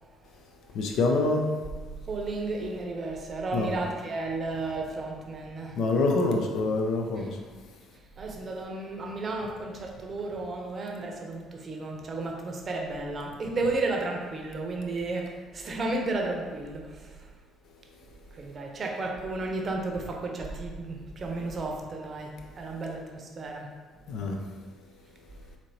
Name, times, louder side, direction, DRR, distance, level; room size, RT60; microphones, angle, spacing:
voice 1, 0.7-1.5 3.5-3.7 5.8-7.4 24.1-24.4, left 3 dB, 65° left, 2 dB, 0.5 m, -25 dB
voice 2, 2.1-5.8 7.1-7.4 7.9-17.3 18.3-23.7, right 2 dB, 45° right, 1 dB, 0.7 m, -33 dB
4.3 x 2.9 x 2.7 m, 1.4 s
hypercardioid pair, 55°, 0 cm